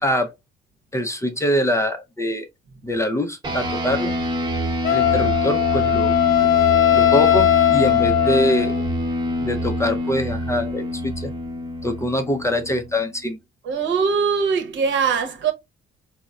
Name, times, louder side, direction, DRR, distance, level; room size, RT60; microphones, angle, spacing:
voice 1, 0.0-0.3 0.9-2.5 2.8-4.1 4.9-6.1 6.4-6.5 6.9-8.8 9.4-11.3 11.8-13.4, equal, 15° left, 0.4 m, -24 dB
sound 1, 3.4-13.2, equal, 25° right, 0.9 m, -26 dB
Wind instrument woodwind instrument, 4.8-8.8, left 13 dB, 80° left, 0.5 m, -18 dB
voice 2, 13.6-15.5, right 6 dB, 70° right, 0.8 m, -21 dB
3.9 x 2.0 x 2.3 m
cardioid pair, 90°, 20 cm